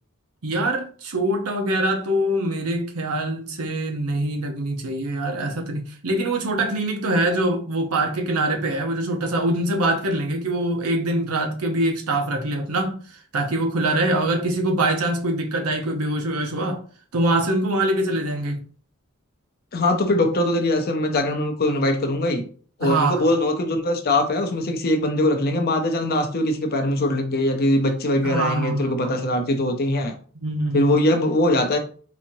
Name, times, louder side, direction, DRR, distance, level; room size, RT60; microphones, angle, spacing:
voice 1, 0.4-13.0 13.3-16.8 17.1-18.6 22.8-23.3 28.2-29.1 30.3-31.0, right 1 dB, 90° right, 0.8 m, -24 dB
voice 2, 19.7-22.5 22.8-30.1 30.7-31.8, left 1 dB, 45° left, 0.6 m, -21 dB
4.1 x 2.9 x 2.7 m
head